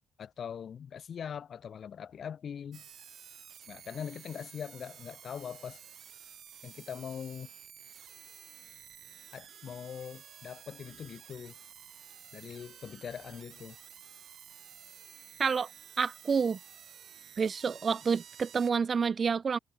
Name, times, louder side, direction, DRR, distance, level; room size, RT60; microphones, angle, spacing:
voice 1, 0.2-2.9 3.7-5.8 6.6-7.5 9.3-11.6 12.3-13.8, left 8 dB, 55° left, 7.2 m, -42 dB
sound 1, 2.7-18.7, right 8 dB, 60° right, 5.8 m, -52 dB
voice 2, 16.0-16.6 17.4-19.6, right 6 dB, 40° right, 0.5 m, -28 dB
cardioid pair, 90°, 0 cm